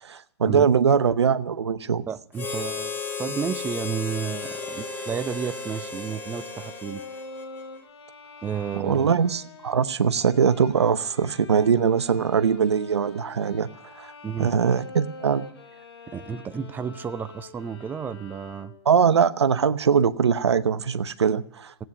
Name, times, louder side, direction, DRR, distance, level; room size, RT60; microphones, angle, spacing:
voice 1, 0.0-2.0 8.7-13.7 13.9-14.1 14.4-15.5 18.8-21.7, right 6 dB, 85° right, 13 dB, 0.9 m, -22 dB
voice 2, 2.1-7.0 8.4-9.1 14.2-14.5 16.1-18.7, right 7 dB, 15° right, 11 dB, 0.7 m, -32 dB
Harmonica, 2.3-7.8, left 4 dB, 15° left, 2.0 m, -34 dB
sound 1, 3.9-19.0, left 3 dB, 70° left, 3.6 m, -46 dB
16.5 x 9.1 x 9.5 m, 0.65 s
hypercardioid pair, 130°, 14 cm